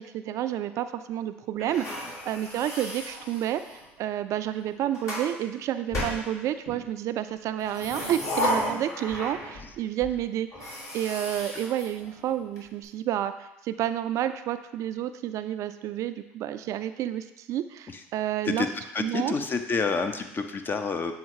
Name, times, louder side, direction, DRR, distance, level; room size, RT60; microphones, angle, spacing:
voice 1, 0.0-10.5 10.9-18.7 19.0-19.3, right 11 dB, 55° right, 11 dB, 0.3 m, -30 dB
sound 1, 1.6-3.9 4.6-5.3 5.9-6.8 7.6-9.7 10.0-10.1 10.5-12.6, left 1 dB, 50° left, 2.5 m, -34 dB
voice 2, 18.9-21.1, left 4 dB, 35° left, 7 dB, 0.7 m, -28 dB
7.2 x 3.4 x 4.8 m, 0.93 s
hypercardioid pair, 70°, 6 cm